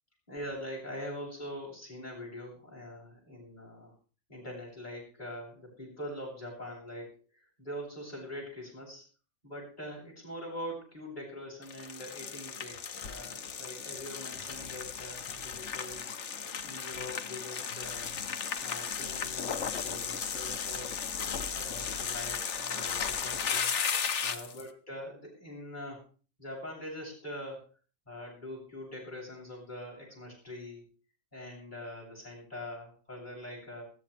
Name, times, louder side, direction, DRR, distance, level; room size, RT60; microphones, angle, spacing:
voice 1, 0.3-3.9 4.3-9.0 9.4-16.2 16.6-18.1 18.6-23.7 24.2-26.1 26.4-27.7 28.1-30.9 31.3-33.8, left 1 dB, 30° left, -4 dB, 7.7 m, -43 dB
sound 1, 11.6-24.6, left 7 dB, 60° left, 1.3 m, -35 dB
20.0 x 15.0 x 3.4 m, 0.38 s
omnidirectional pair, 1.5 m